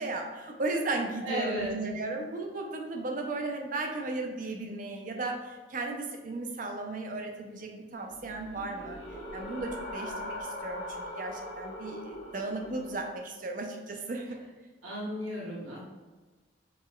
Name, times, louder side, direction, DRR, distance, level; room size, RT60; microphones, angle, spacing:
voice 1, 0.0-9.0 9.3-10.8 11.1-14.4, right 2 dB, 40° right, 2 dB, 0.5 m, -35 dB
voice 2, 1.2-1.7 14.8-15.8, equal, 85° right, -6 dB, 1.2 m, -34 dB
sound 1, 8.0-13.2, left 1 dB, 65° left, 1.1 m, -41 dB
4.5 x 4.3 x 2.3 m, 1.3 s
head